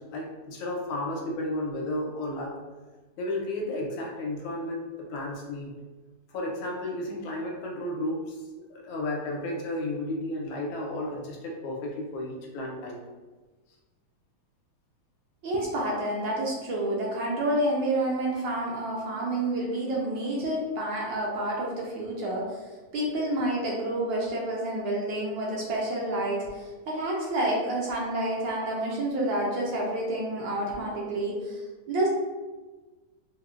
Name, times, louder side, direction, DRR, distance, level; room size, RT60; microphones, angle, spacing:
voice 1, 0.0-2.6 3.2-5.8 6.3-8.4 8.7-13.0, left 1 dB, 80° left, -1 dB, 1.5 m, -33 dB
voice 2, 15.4-22.6 22.9-32.1, right 1 dB, 75° right, -3 dB, 1.2 m, -29 dB
4.3 x 2.1 x 2.4 m, 1.3 s
omnidirectional pair, 2.3 m